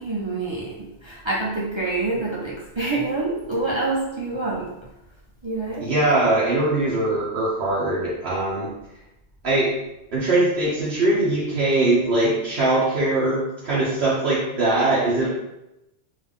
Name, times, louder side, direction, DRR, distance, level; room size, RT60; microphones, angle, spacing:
voice 1, 0.0-4.7 5.4-5.9, right 3 dB, 30° right, -6 dB, 0.6 m, -26 dB
voice 2, 5.8-8.7 9.4-9.7 10.1-15.3, right 2 dB, 65° right, -8 dB, 1.1 m, -21 dB
3.9 x 2.7 x 3.5 m, 0.92 s
omnidirectional pair, 1.2 m